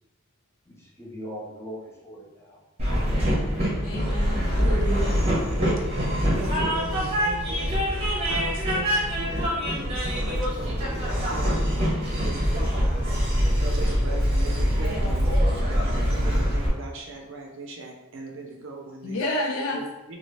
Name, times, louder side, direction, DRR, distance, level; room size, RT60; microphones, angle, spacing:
voice 1, 0.7-2.6 2.9-3.4, equal, 10° left, -4 dB, 0.6 m, -41 dB
Train, 2.8-16.7, equal, 30° right, 0.7 m, -24 dB
voice 2, 3.8-5.3 19.0-19.8, left 1 dB, 65° left, -1 dB, 0.5 m, -30 dB
voice 3, 6.3-11.5 12.1-13.2 13.6-19.3 19.7-20.2, right 2 dB, 60° right, 1 dB, 0.5 m, -39 dB
2.8 x 2.4 x 3.1 m, 0.99 s
head